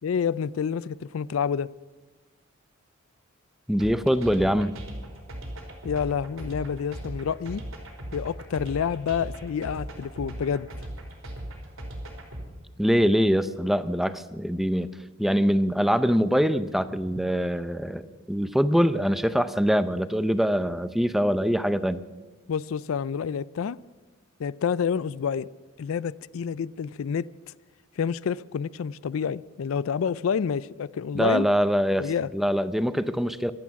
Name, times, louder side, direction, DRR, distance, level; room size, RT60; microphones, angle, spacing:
voice 1, 0.0-1.7 5.8-7.6 8.1-10.7 22.5-23.8 24.4-25.5 25.8-27.3 28.0-31.5 32.0-32.3, left 7 dB, 80° left, 0.4 m, -28 dB
voice 2, 3.7-4.7 12.8-14.9 15.2-22.0 31.1-33.5, equal, ahead, 0.5 m, -23 dB
sound 1, 3.8-12.5, right 1 dB, 85° right, 3.9 m, -38 dB
24.5 x 8.7 x 5.9 m
head